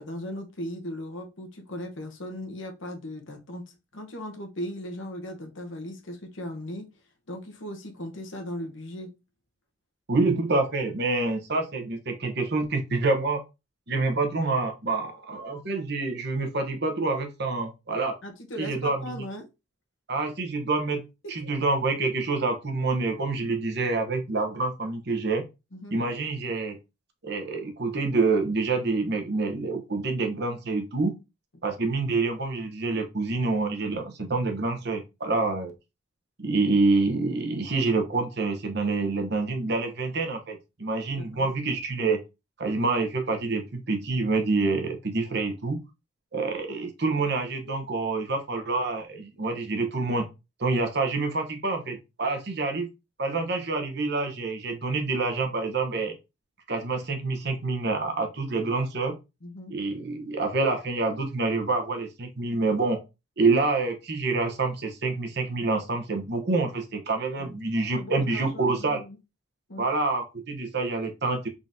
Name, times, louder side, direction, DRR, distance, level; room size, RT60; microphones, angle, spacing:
voice 1, 0.0-6.9 7.3-9.1 18.2-19.5 21.2-21.5 25.7-25.9 41.1-41.5 59.4-59.7 67.4-67.6 68.0-69.2 69.7-69.9, equal, 70° left, 4 dB, 1.0 m, -38 dB
voice 2, 10.1-13.4 13.9-18.2 18.6-19.2 20.1-25.4 25.9-26.8 27.2-31.1 31.6-35.7 36.4-42.2 42.6-45.8 46.3-50.3 50.6-52.9 53.2-56.1 56.7-59.1 59.7-63.0 63.4-69.0 69.8-71.5, right 3 dB, 55° right, 4 dB, 0.9 m, -27 dB
3.8 x 3.7 x 2.6 m, 0.26 s
head